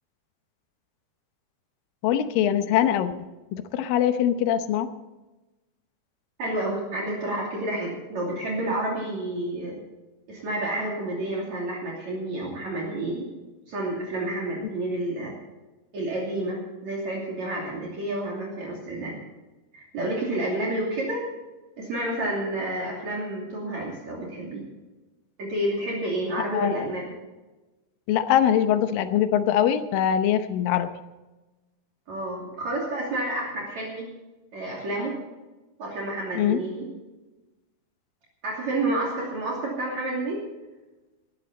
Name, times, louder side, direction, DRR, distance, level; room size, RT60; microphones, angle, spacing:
voice 1, 2.0-3.1 3.5-4.9 26.5-26.9 28.1-30.9 36.4-36.6, left 10 dB, 70° left, 9 dB, 2.5 m, -22 dB
voice 2, 6.4-9.8 10.3-13.3 13.7-15.3 15.9-19.2 19.7-21.3 21.8-24.6 25.4-27.1 32.1-34.1 34.5-35.1 35.8-36.9 38.4-40.4, right 1 dB, 50° right, -3 dB, 3.8 m, -29 dB
18.5 x 13.0 x 4.3 m, 1.1 s
omnidirectional pair, 4.5 m